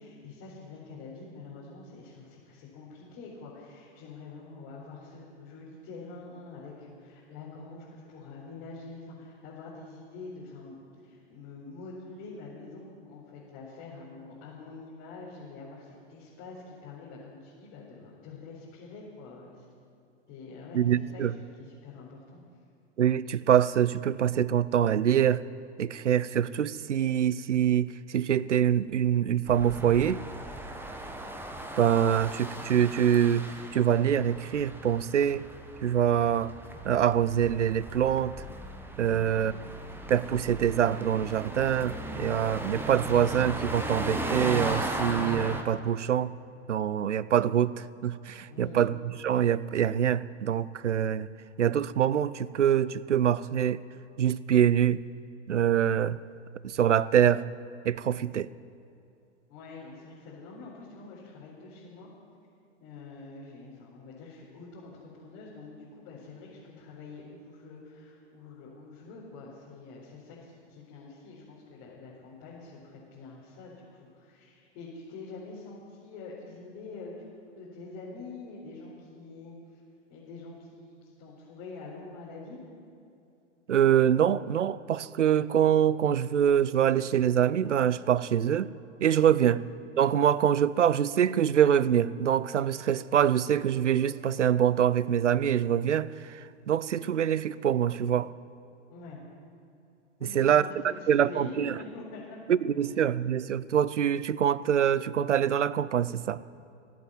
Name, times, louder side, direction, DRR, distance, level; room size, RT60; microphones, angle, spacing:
voice 1, 0.0-19.6 20.3-22.4 39.1-39.5 48.5-48.9 59.5-62.1 62.8-77.3 77.6-79.6 80.1-82.7 89.2-89.6 98.9-99.2 100.2-102.4 102.8-102.9, left 3 dB, 40° left, -6 dB, 4.3 m, -46 dB
voice 2, 20.7-21.3 23.0-25.4 25.8-30.2 31.8-35.4 35.8-36.5 36.8-38.3 39.0-39.5 40.1-46.3 46.7-49.0 49.2-51.3 51.6-53.8 54.2-55.0 55.5-56.2 56.6-57.4 57.8-58.5 83.7-88.7 89.0-89.6 90.0-98.3 100.3-100.6 101.1-101.7 102.5-106.4, right 9 dB, 80° right, 19 dB, 0.6 m, -25 dB
sound 1, 29.5-45.6, right 1 dB, 5° right, 1.2 m, -37 dB
17.5 x 8.5 x 9.0 m, 2.6 s
figure-of-eight pair, 105°, 35 cm